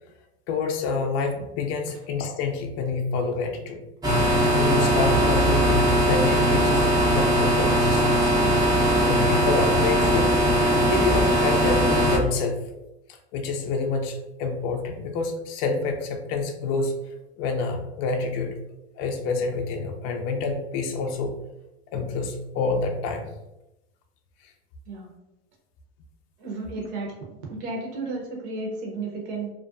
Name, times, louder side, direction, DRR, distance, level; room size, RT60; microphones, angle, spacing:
voice 1, 0.5-3.8 4.5-6.9 7.1-8.3 8.6-8.7 9.1-10.3 10.9-12.6 13.3-16.9 17.4-18.6 19.0-21.4 21.9-23.3 24.4-24.5, left 4 dB, 45° left, 4 dB, 0.4 m, -28 dB
sound 1, 4.0-12.2, equal, 10° right, 0.5 m, -20 dB
voice 2, 26.4-29.5, right 3 dB, 65° right, -1 dB, 0.8 m, -33 dB
2.4 x 2.1 x 2.4 m, 0.93 s
hypercardioid pair, 105°, 34 cm